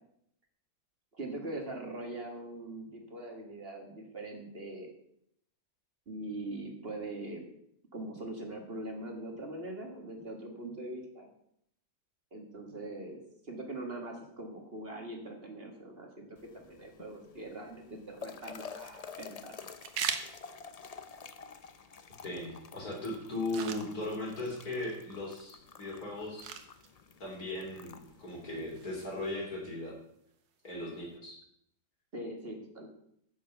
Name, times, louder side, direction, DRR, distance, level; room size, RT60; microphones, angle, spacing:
voice 1, 1.1-4.9 6.1-7.5 7.9-11.3 12.3-19.6 32.1-32.9, right 1 dB, 35° right, 3 dB, 1.7 m, -42 dB
sound 1, 16.4-29.3, left 6 dB, 85° left, 0.3 m, -50 dB
sound 2, 18.1-31.2, right 7 dB, 70° right, 1.5 m, -46 dB
voice 2, 22.2-26.5 27.2-29.9 30.6-31.4, left 2 dB, 65° left, -1 dB, 3.8 m, -38 dB
9.9 x 7.0 x 6.8 m, 0.72 s
omnidirectional pair, 1.7 m